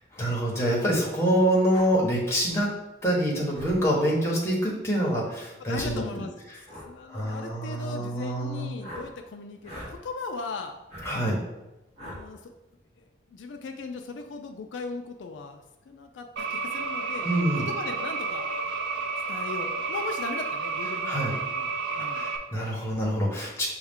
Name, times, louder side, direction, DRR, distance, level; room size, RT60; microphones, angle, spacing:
voice 1, 0.1-2.7 3.0-6.0 7.1-8.7 11.0-11.4 17.2-17.7 21.0-21.3 22.1-23.7, right 1 dB, 15° left, -4 dB, 1.0 m, -26 dB
sound 1, 1.7-1.9 3.5-3.8 5.7-6.0 6.7-6.9 8.8-9.1 9.6-9.9 10.9-11.1 12.0-12.2, equal, 35° right, 1.3 m, -40 dB
voice 2, 5.6-6.3 6.9-10.7 12.0-12.5 13.3-17.3 17.6-18.4 19.3-21.7 22.0-22.3, left 4 dB, 75° left, 5 dB, 0.4 m, -38 dB
sound 2, 16.4-22.4, right 4 dB, 70° right, 0.5 m, -31 dB
6.2 x 2.3 x 3.5 m, 0.99 s
head